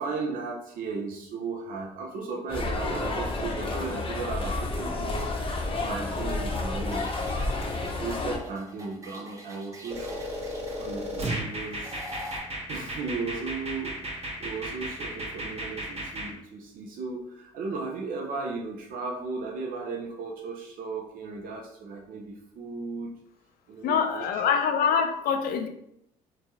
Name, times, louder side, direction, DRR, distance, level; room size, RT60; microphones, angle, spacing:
voice 1, 0.0-5.3 5.8-7.3 8.0-10.2 10.8-12.0 12.7-23.1 23.7-24.5, right 4 dB, 60° right, -1 dB, 0.6 m, -36 dB
sound 1, 2.5-8.4, left 2 dB, 35° left, 0.7 m, -30 dB
sound 2, 6.9-12.4, equal, 20° right, 0.7 m, -45 dB
sound 3, 9.9-16.3, equal, 40° right, 1.0 m, -34 dB
voice 2, 23.8-25.7, left 6 dB, 65° left, 7 dB, 0.4 m, -25 dB
2.9 x 2.3 x 2.8 m, 0.76 s
supercardioid pair, 65°, 17 cm